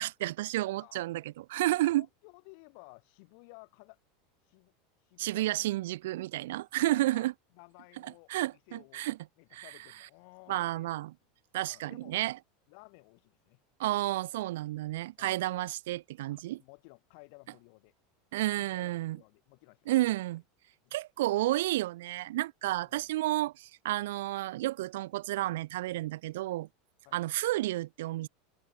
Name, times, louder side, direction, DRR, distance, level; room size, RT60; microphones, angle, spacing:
voice 1, 0.0-2.1 5.2-7.3 8.3-9.2 9.5-9.6 10.5-11.1 11.5-12.4 13.8-16.6 18.3-19.2 19.9-20.4 20.9-26.7 27.1-28.3, right 16 dB, 80° right, 0.4 m, -31 dB
voice 2, 1.7-4.0 4.4-4.7 5.0-5.7 6.8-9.1 9.4-10.9 11.6-12.1 12.7-13.6 15.2-15.4 16.3-17.9 18.3-19.9 20.8-20.9 22.8-23.1 27.0-27.3, left 37 dB, 65° left, 4.2 m, -56 dB
supercardioid pair, 110°, 0 cm